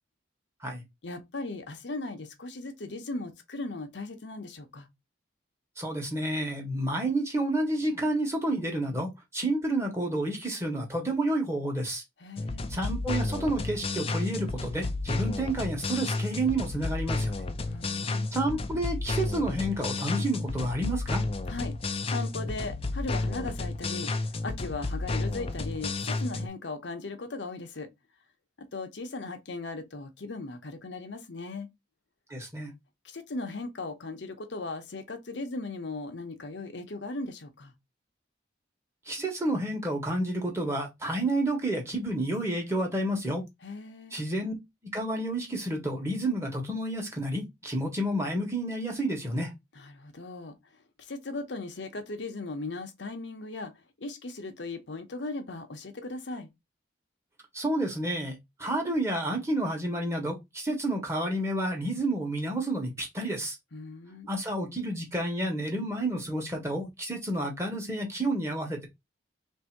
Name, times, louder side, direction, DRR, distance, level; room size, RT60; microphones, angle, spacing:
voice 1, 1.0-4.9 12.2-12.7 17.7-18.3 21.5-27.9 28.6-31.7 33.0-37.7 43.6-44.2 49.7-50.6 51.0-53.7 54.0-56.5 63.7-64.3, left 2 dB, 70° left, 0.8 m, -38 dB
voice 2, 5.8-12.0 12.7-17.3 18.3-21.2 32.3-32.7 39.1-43.4 44.1-44.5 44.9-49.5 57.5-63.6 64.3-68.9, right 1 dB, 15° right, 1.1 m, -30 dB
sound 1, 12.4-26.5, left 3 dB, 30° left, 0.4 m, -32 dB
3.3 x 2.7 x 4.5 m
head